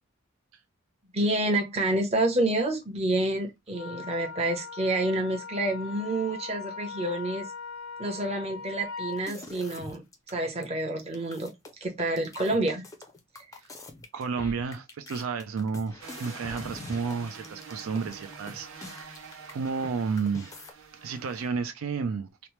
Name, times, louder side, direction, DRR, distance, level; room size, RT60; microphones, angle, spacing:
voice 1, 1.1-7.5 8.0-11.5 11.8-12.9, right 1 dB, 30° right, 0.7 m, -28 dB
Wind instrument woodwind instrument, 3.7-9.2, left 5 dB, 85° left, 0.5 m, -40 dB
sound 1, 9.1-10.3 10.6-10.7 11.0-19.9 20.2-20.7, left 2 dB, 15° left, 0.4 m, -44 dB
voice 2, 14.1-19.2 19.5-20.5 21.0-22.5, right 5 dB, 85° right, 0.4 m, -32 dB
sound 2, 16.0-21.5, right 5 dB, 70° right, 0.8 m, -46 dB
2.9 x 2.0 x 3.0 m
head